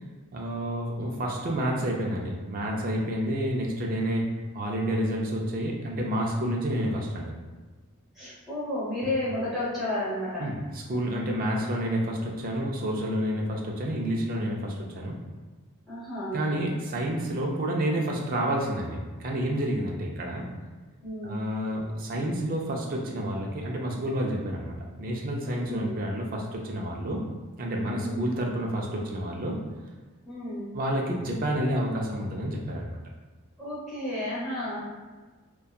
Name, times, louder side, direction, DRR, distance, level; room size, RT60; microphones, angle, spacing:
voice 1, 0.3-4.3 4.5-7.3 9.0-9.1 10.4-15.2 16.3-20.5 21.2-27.2 27.6-29.6 30.7-33.0, equal, 40° right, -1 dB, 0.4 m, -29 dB
voice 2, 8.1-10.4 15.9-16.4 21.0-21.4 25.4-25.9 27.8-28.2 30.2-30.7 33.6-34.8, left 1 dB, ahead, -11 dB, 0.9 m, -32 dB
2.7 x 2.2 x 2.2 m, 1.3 s
head